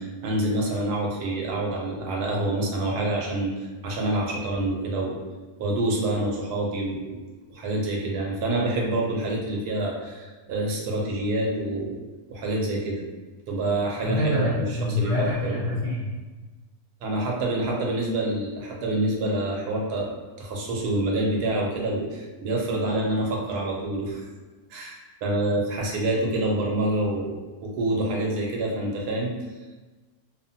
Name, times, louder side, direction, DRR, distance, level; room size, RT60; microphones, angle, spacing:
voice 1, 0.0-3.5 3.8-5.2 5.6-7.0 7.5-12.0 12.3-13.0 13.5-14.6 15.0-15.6 17.0-24.2 24.7-29.4, right 1 dB, 85° right, -1 dB, 1.2 m, -27 dB
voice 2, 14.0-16.1, left 1 dB, 40° left, -10 dB, 0.4 m, -26 dB
2.8 x 2.1 x 2.6 m, 1.2 s
omnidirectional pair, 1.6 m